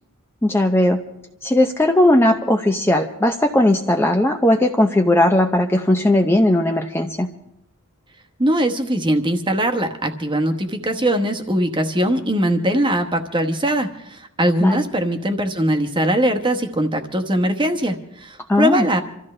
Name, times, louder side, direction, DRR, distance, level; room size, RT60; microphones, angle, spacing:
voice 1, 0.4-1.0 1.4-7.3 14.6-14.8 18.5-18.9, left 1 dB, 10° left, 4 dB, 0.6 m, -17 dB
voice 2, 8.4-19.0, right 1 dB, 20° right, 6 dB, 1.1 m, -21 dB
27.0 x 14.0 x 3.3 m, 0.81 s
head